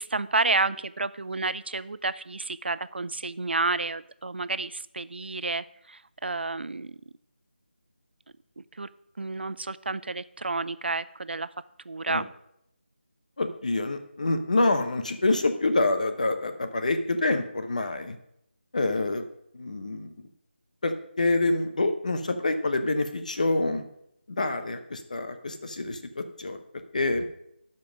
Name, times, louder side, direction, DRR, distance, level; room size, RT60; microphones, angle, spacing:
voice 1, 0.0-7.0 8.6-8.9 9.2-11.5 11.8-12.3, right 3 dB, 65° right, 16 dB, 0.5 m, -30 dB
voice 2, 13.4-18.2 18.7-19.3 19.5-20.1 20.8-23.8 24.3-26.6 26.9-27.2, left 2 dB, 40° left, 8 dB, 0.9 m, -26 dB
12.0 x 5.4 x 5.2 m, 0.76 s
figure-of-eight pair, 175°, 6 cm